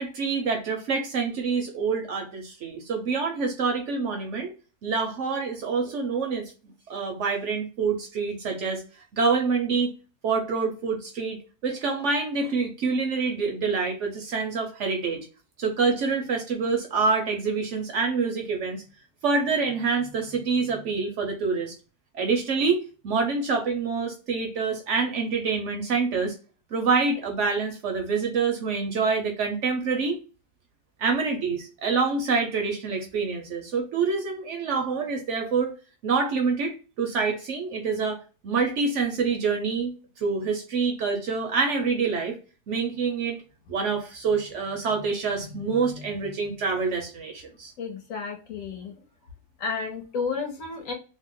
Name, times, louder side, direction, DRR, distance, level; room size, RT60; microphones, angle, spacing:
voice 1, 0.0-4.5 4.8-6.5 6.9-8.8 9.1-9.9 10.2-15.3 15.6-18.8 19.2-21.7 22.1-26.3 26.7-30.2 31.0-35.7 36.0-42.4 42.7-43.4 43.7-47.7, right 4 dB, 65° right, 3 dB, 0.8 m, -26 dB
voice 2, 47.8-48.9 49.6-50.9, left 5 dB, 65° left, 4 dB, 1.0 m, -32 dB
2.8 x 2.1 x 3.7 m, 0.34 s
omnidirectional pair, 1.7 m